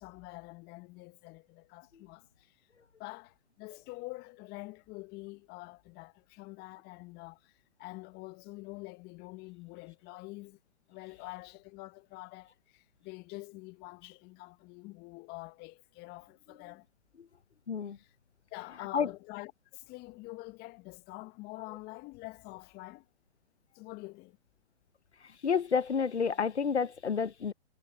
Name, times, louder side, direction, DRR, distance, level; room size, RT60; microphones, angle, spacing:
voice 1, 0.0-2.6 3.0-10.6 10.9-16.8 17.9-18.1 18.5-23.1 23.7-24.4, left 23 dB, 30° left, 1.3 m, -46 dB
voice 2, 17.7-18.0 18.9-19.1 25.4-27.5, left 6 dB, 85° left, 1.2 m, -29 dB
hypercardioid pair, 120°, 33 cm